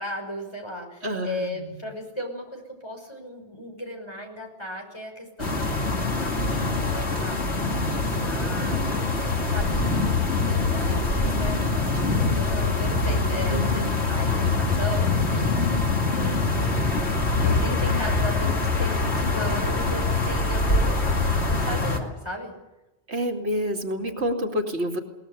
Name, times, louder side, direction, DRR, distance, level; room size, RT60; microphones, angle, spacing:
voice 1, 0.0-5.7 6.1-10.1 10.5-13.8 14.1-15.8 16.1-16.8 17.4-21.0 21.5-22.5, equal, 25° left, 2 dB, 5.8 m, -36 dB
voice 2, 1.0-1.7 13.5-14.4 23.1-25.0, equal, 85° right, 2 dB, 2.7 m, -29 dB
sound 1, 5.4-22.0, left 3 dB, 85° left, 2.8 m, -24 dB
sound 2, 8.1-17.7, left 1 dB, ahead, 7.8 m, -41 dB
21.5 x 19.5 x 8.3 m, 1.0 s
omnidirectional pair, 1.1 m